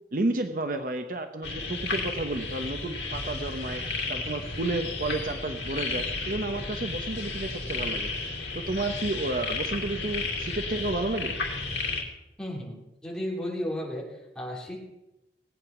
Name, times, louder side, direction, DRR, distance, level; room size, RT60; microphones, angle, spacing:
voice 1, 0.1-3.8 4.1-8.1 8.5-11.4, right 2 dB, 50° right, 7 dB, 0.8 m, -31 dB
sound 1, 1.4-12.0, left 3 dB, 80° left, 2.4 m, -33 dB
voice 2, 12.4-14.8, left 1 dB, 5° left, -4 dB, 3.3 m, -34 dB
18.0 x 9.0 x 5.9 m, 0.95 s
head